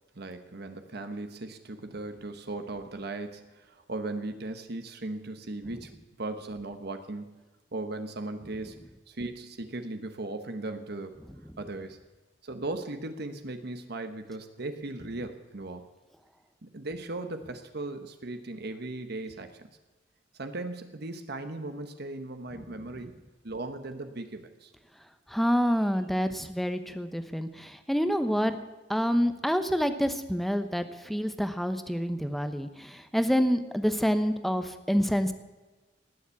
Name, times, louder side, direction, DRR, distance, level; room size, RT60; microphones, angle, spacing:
voice 1, 0.1-7.4 7.7-8.8 9.1-11.2 11.6-12.0 12.4-15.9 16.6-19.7 20.3-23.1 23.4-24.7, right 2 dB, 60° right, 8 dB, 1.1 m, -37 dB
voice 2, 25.3-28.6 28.9-35.3, equal, ahead, 9 dB, 0.9 m, -27 dB
19.0 x 7.2 x 8.4 m, 1.2 s
head